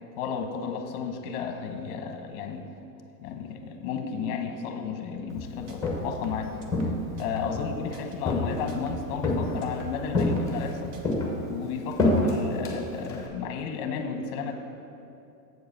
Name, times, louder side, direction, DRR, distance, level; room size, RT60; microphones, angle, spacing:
voice 1, 0.2-2.7 3.2-6.6 7.2-10.9 11.5-14.5, left 6 dB, 40° left, 5 dB, 0.9 m, -33 dB
sound 1, 5.3-7.7 7.9-10.7 10.9-11.2, right 2 dB, 50° right, 1.1 m, -43 dB
Walk footsteps, 5.6-6.2 6.7-7.7 8.3-8.8 9.2-9.8 10.1-10.7 11.0-13.3, left 2 dB, 5° left, 0.9 m, -27 dB
8.0 x 4.7 x 6.6 m, 2.7 s
supercardioid pair, 160°, 49 cm